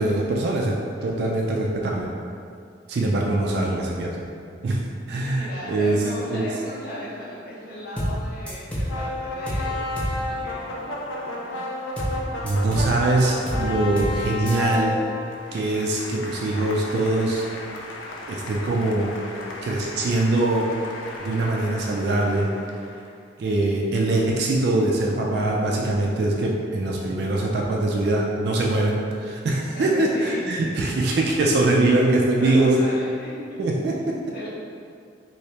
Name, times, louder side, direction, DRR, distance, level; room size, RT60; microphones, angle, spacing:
voice 1, 0.0-2.1 2.9-4.3 4.6-4.8 5.1-6.0 6.3-6.5 12.4-15.0 15.5-17.4 18.3-19.2 19.6-20.8 21.2-22.5 23.4-32.8 33.6-34.2, right 2 dB, 55° right, -1 dB, 0.3 m, -23 dB
voice 2, 5.1-11.8 12.4-12.6 29.7-30.4 31.1-31.2 32.2-33.6 34.3-34.5, equal, 50° left, -7 dB, 0.8 m, -37 dB
sound 1, 8.0-8.2 8.5-9.0 9.5-9.7 10.0-10.2 12.0-12.2 12.5-13.0 13.5-13.7 14.0-14.2 14.5-14.6, equal, 5° left, 0.4 m, -27 dB
sound 2, 8.9-23.1, left 2 dB, 85° left, 0.4 m, -33 dB
2.9 x 2.7 x 3.2 m, 2.3 s
head